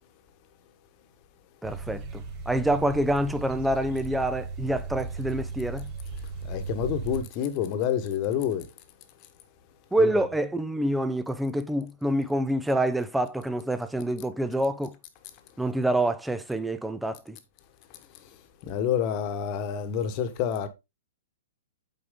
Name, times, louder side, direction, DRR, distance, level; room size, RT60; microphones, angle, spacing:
voice 1, 1.6-5.9 9.9-14.9 15.6-17.4, right 1 dB, 5° right, 0.7 m, -27 dB
sound 1, 1.6-7.2, right 4 dB, 35° right, 3.0 m, -36 dB
voice 2, 6.4-8.7 10.0-10.3 18.6-20.7, left 9 dB, 40° left, 1.4 m, -28 dB
8.2 x 4.6 x 3.7 m
hypercardioid pair, 115°, 0 cm